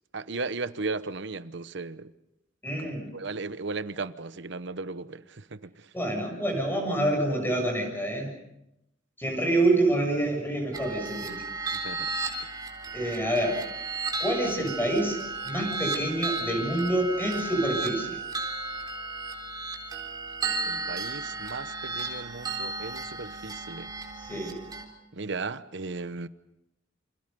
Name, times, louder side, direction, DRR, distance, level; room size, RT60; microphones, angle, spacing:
voice 1, 0.1-2.1 2.8-5.9 11.3-11.4 11.7-12.1 20.6-23.9 25.1-26.3, right 3 dB, 60° right, 1.0 m, -36 dB
voice 2, 2.6-3.1 5.9-8.3 9.2-11.4 12.9-13.8 14.2-18.2 24.2-24.6, right 1 dB, 10° left, 7.1 m, -27 dB
sound 1, 10.7-24.8, right 3 dB, 20° right, 3.8 m, -34 dB
28.5 x 27.5 x 5.3 m
head